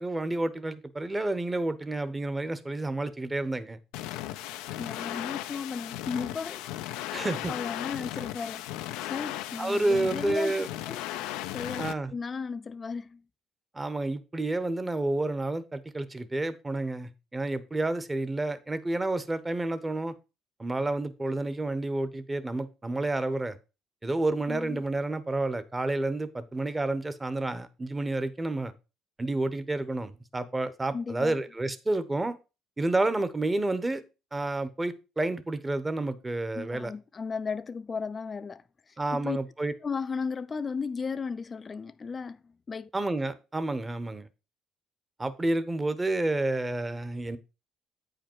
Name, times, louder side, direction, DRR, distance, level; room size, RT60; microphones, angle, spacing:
voice 1, 0.0-3.8 7.1-7.5 9.6-10.7 11.8-12.1 13.7-20.1 20.6-23.6 24.0-28.7 29.2-32.4 32.8-34.0 34.3-36.9 39.0-39.7 42.9-44.3 45.2-47.4, right 2 dB, 20° right, 1.0 m, -30 dB
sound 1, 3.9-11.9, left 14 dB, 85° left, 0.5 m, -36 dB
voice 2, 4.8-6.6 7.5-8.7 9.0-11.0 11.5-11.8 12.1-13.2 24.5-24.8 30.9-31.3 36.5-39.4 39.8-42.9, left 5 dB, 35° left, 0.4 m, -35 dB
8.6 x 5.1 x 4.5 m
supercardioid pair, 80°, 0 cm